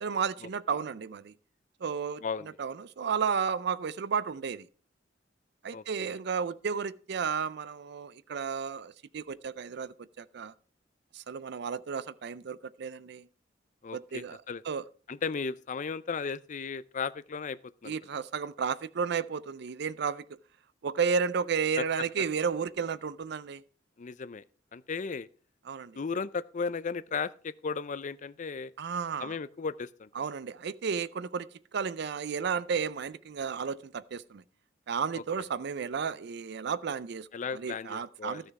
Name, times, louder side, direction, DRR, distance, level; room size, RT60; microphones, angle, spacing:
voice 1, 0.0-1.3 1.8-2.2 2.6-4.7 5.6-10.5 11.1-13.3 13.9-14.4 14.7-14.8 17.8-20.3 20.8-23.6 25.7-26.0 28.8-29.4 30.2-34.4 34.9-37.3 37.5-38.5, right 6 dB, 60° right, 0.5 m, -33 dB
voice 2, 2.2-2.6 5.7-6.2 13.8-14.6 15.1-17.9 21.8-21.9 24.0-24.4 24.7-25.3 26.0-28.7 29.2-30.1 35.1-35.2 37.3-38.4, left 5 dB, 40° left, 0.5 m, -35 dB
13.0 x 6.5 x 4.7 m
head